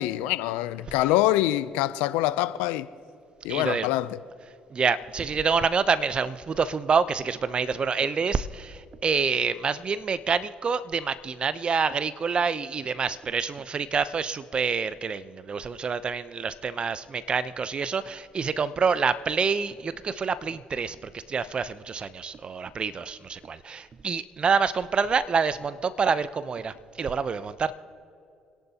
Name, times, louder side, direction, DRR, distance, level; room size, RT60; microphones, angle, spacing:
voice 1, 0.0-2.9 3.4-4.2, left 15 dB, 80° left, 0.5 m, -25 dB
voice 2, 3.5-3.9 4.7-27.7, right 5 dB, 40° right, 0.7 m, -27 dB
29.0 x 11.0 x 2.9 m
hypercardioid pair, 55°, 3 cm